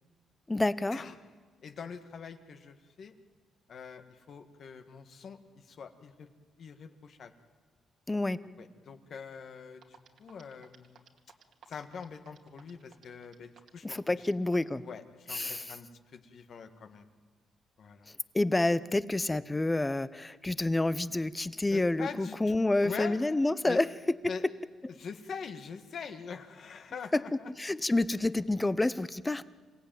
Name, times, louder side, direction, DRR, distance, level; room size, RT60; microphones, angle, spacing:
voice 1, 0.5-1.0 8.1-8.4 13.8-14.8 15.3-15.6 18.3-23.9 24.2-24.3 27.1-27.2 27.6-29.4, left 2 dB, 15° left, 16 dB, 0.8 m, -28 dB
voice 2, 1.6-3.1 3.7-6.3 6.6-7.3 8.4-11.1 11.7-14.3 14.8-17.1 17.8-18.1 21.7-22.4 22.8-23.3 23.6-23.8 24.3-24.4 25.0-27.5, left 6 dB, 55° left, 7 dB, 1.8 m, -43 dB
sound 1, 9.8-14.8, right 7 dB, 70° right, 2.3 m, -57 dB
27.5 x 16.5 x 9.2 m, 1.5 s
cardioid pair, 90°, 0 cm